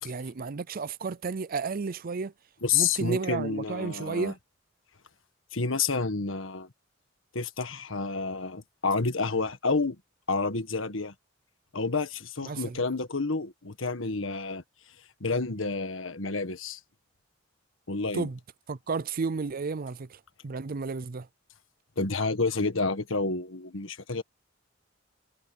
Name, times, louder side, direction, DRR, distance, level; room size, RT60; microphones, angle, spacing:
voice 1, 0.0-2.3 2.7-4.4 12.5-12.8 18.1-18.4 18.7-21.3, right 4 dB, 45° right, 0.5 m, -32 dB
voice 2, 2.6-4.3 5.5-6.7 7.3-10.0 10.3-11.1 11.7-14.6 15.2-16.8 17.9-18.3 22.0-24.2, left 4 dB, 75° left, 1.7 m, -29 dB
head